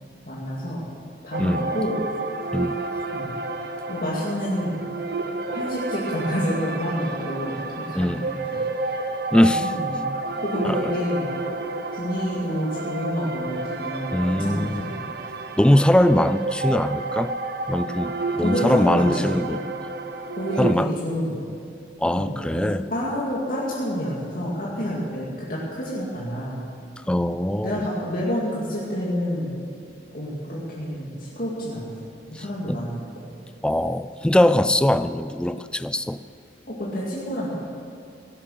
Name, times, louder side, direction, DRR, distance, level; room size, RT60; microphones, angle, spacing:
voice 1, 0.2-0.8 1.2-2.0 3.1-3.4 3.9-4.8 5.5-8.6 9.4-10.0 10.4-11.3 11.9-15.0 18.4-19.3 20.4-21.4 22.1-26.6 27.6-29.5 30.1-31.9 32.3-33.0 36.7-37.6, equal, 50° left, -6 dB, 2.4 m, -28 dB
sound 1, 1.3-20.7, right 3 dB, 55° right, 0.9 m, -30 dB
voice 2, 7.9-8.3 9.3-9.7 10.6-10.9 14.1-14.8 15.6-17.3 17.7-19.6 20.6-20.9 22.0-22.8 27.1-27.9 32.3-32.9 33.6-36.2, left 1 dB, 5° left, 12 dB, 0.3 m, -21 dB
17.5 x 11.5 x 6.5 m, 2.5 s
head